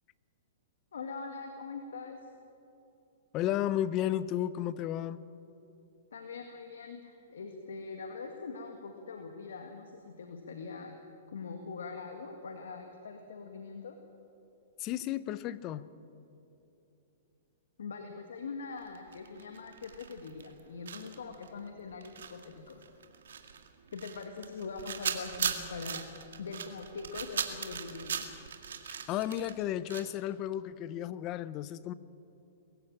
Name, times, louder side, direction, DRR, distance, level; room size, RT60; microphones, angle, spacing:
voice 1, 0.9-2.2 6.1-10.9 11.3-14.0 17.8-22.8 23.9-26.1 26.4-28.3, left 4 dB, 85° left, 4 dB, 1.9 m, -42 dB
voice 2, 3.3-5.2 14.8-15.9 29.1-31.9, left 12 dB, 30° left, 16 dB, 0.8 m, -33 dB
sound 1, 18.8-20.6 20.8-30.0, right 7 dB, 80° right, 2.1 m, -38 dB
22.5 x 15.0 x 8.9 m, 2.8 s
hypercardioid pair, 140°, 0 cm